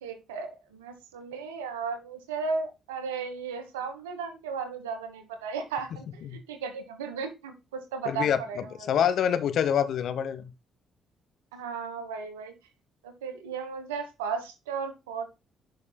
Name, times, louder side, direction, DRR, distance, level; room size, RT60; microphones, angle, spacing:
voice 1, 0.0-9.0 11.5-12.5 13.0-15.4, right 5 dB, 90° right, 1.2 m, -35 dB
voice 2, 8.1-10.4, left 9 dB, 65° left, 1.0 m, -26 dB
10.5 x 5.4 x 2.3 m
hypercardioid pair, 50°, 0 cm